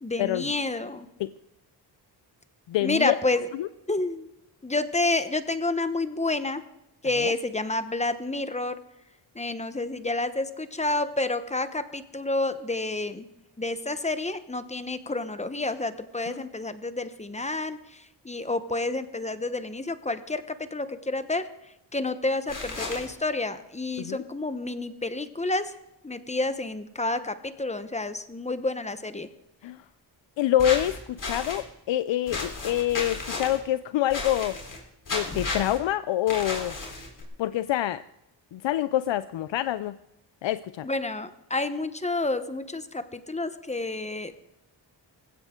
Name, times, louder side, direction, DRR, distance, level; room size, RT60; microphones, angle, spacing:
voice 1, 0.0-1.1 2.8-3.5 3.9-4.3 4.6-6.6 7.0-8.8 9.3-13.3 13.6-21.5 21.9-25.7 26.0-29.3 40.8-44.3, left 2 dB, 15° left, 11 dB, 0.9 m, -29 dB
voice 2, 2.7-3.1 3.5-3.7 7.2-7.3 16.3-16.5 24.0-24.2 29.6-29.8 30.4-34.6 35.1-36.8 37.4-38.0 38.5-40.0 40.4-40.9, left 12 dB, 80° left, 14 dB, 0.5 m, -26 dB
sound 1, 22.5-23.1 30.6-31.6 32.3-33.6 34.1-34.8 35.1-35.8 36.3-37.2, left 3 dB, 45° left, 3.9 m, -33 dB
20.0 x 16.0 x 3.7 m, 0.89 s
wide cardioid pair, 110°, 44 cm